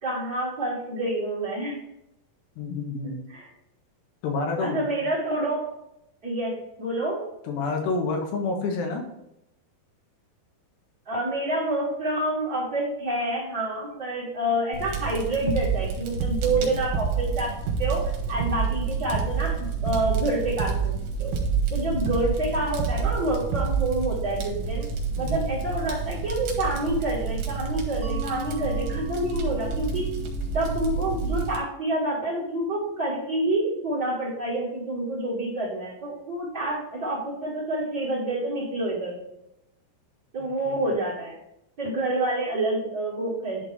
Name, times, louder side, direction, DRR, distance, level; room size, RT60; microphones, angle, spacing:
voice 1, 0.0-1.8 3.3-3.5 4.6-5.6 6.2-6.5 6.8-7.2 11.1-17.5 17.8-18.0 18.3-19.5 19.8-20.9 21.2-21.3 21.7-24.9 25.2-30.1 30.5-39.2 40.3-41.4 41.8-43.7, right 1 dB, 25° right, -7 dB, 2.5 m, -28 dB
voice 2, 2.6-3.2 4.2-5.1 7.5-9.0 16.4-16.7 25.2-25.4 40.7-40.9, left 3 dB, 85° left, 2 dB, 3.5 m, -29 dB
Fire, 14.7-31.6, right 4 dB, 70° right, 3.1 m, -30 dB
sound 1, 15.5-15.9 16.2-16.6 16.9-17.3 17.7-18.0 18.4-18.8 19.1-19.5 19.9-20.2 20.6-21.0 21.3-21.7 22.1-22.4 22.8-23.2 23.5-23.9, right 7 dB, 90° right, 2.9 m, -27 dB
Mallet percussion, 28.0-33.4, left 5 dB, 50° right, 3.0 m, -42 dB
11.0 x 4.3 x 3.5 m, 0.83 s
omnidirectional pair, 4.8 m